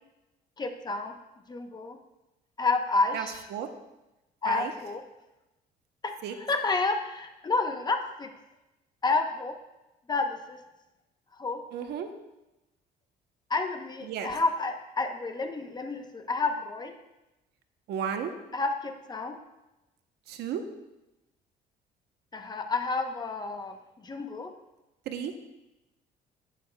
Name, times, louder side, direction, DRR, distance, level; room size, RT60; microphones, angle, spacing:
voice 1, 0.6-1.1 1.5-2.0 2.6-3.4 4.4-5.0 6.0-8.3 9.0-9.5 10.1-10.6 11.4-11.6 13.5-16.9 18.5-19.4 22.3-23.7 24.0-24.5, left 3 dB, 25° left, 6 dB, 0.8 m, -30 dB
voice 2, 3.1-3.7 4.4-4.7 6.2-6.3 11.7-12.1 14.0-14.3 17.9-18.3 20.3-20.6 25.1-25.3, right 8 dB, 75° right, 7 dB, 0.9 m, -33 dB
11.0 x 9.0 x 2.3 m, 0.98 s
cardioid pair, 110°, 17 cm